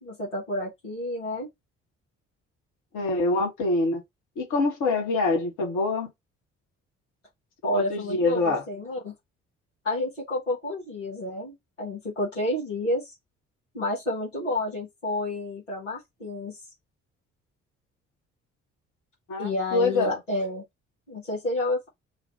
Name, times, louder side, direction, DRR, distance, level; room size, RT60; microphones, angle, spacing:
voice 1, 0.0-1.5 7.6-9.1 9.8-13.2 13.7-16.6 19.4-20.6 21.1-21.9, left 1 dB, 90° left, 1.3 m, -30 dB
voice 2, 2.9-4.0 4.4-6.1 7.7-8.6 19.3-20.2, left 3 dB, 55° left, 1.5 m, -25 dB
3.2 x 2.4 x 4.1 m
figure-of-eight pair, 45°, 36 cm